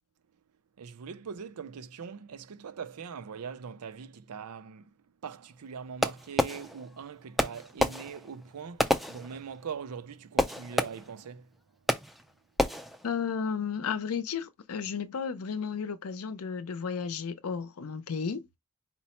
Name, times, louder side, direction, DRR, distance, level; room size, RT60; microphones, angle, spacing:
voice 1, 0.8-4.9 5.2-11.5, right 6 dB, 85° right, 0.5 m, -42 dB
Fireworks, 6.0-7.0 7.4-9.8 10.4-11.3 11.9-12.3 12.6-13.1, left 1 dB, ahead, 0.3 m, -30 dB
voice 2, 13.0-18.5, left 6 dB, 70° left, 0.5 m, -33 dB
4.4 x 2.0 x 4.2 m
head